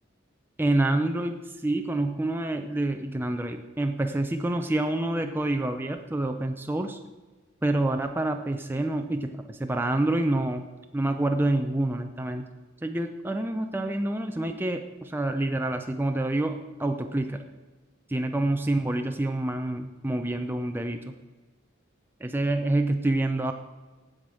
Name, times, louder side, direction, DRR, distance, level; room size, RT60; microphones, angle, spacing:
voice 1, 0.6-7.0 7.6-10.6 10.9-12.5 12.8-17.4 18.1-21.1 22.2-23.5, right 1 dB, 10° right, 5 dB, 0.5 m, -27 dB
8.5 x 7.9 x 7.6 m, 1.3 s
head